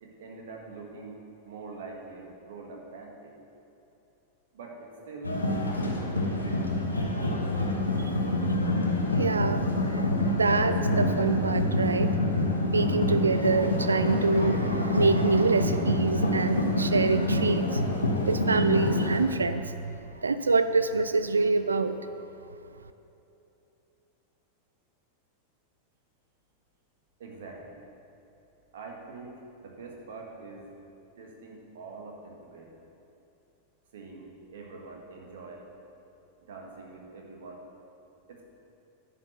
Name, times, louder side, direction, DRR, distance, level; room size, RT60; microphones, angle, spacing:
voice 1, 0.0-3.4 4.5-5.4 5.8-6.7 27.2-27.8 28.7-30.7 31.2-32.8 33.9-35.6 36.4-37.6 38.3-38.4, right 3 dB, 60° right, 0 dB, 1.6 m, -44 dB
sound 1, 5.2-19.3, left 1 dB, 80° left, 1.0 m, -26 dB
voice 2, 9.1-12.2 12.7-17.9 18.3-22.0, right 4 dB, 75° right, 11 dB, 0.3 m, -26 dB
10.5 x 5.7 x 6.4 m, 2.9 s
figure-of-eight pair, 90°, 0 cm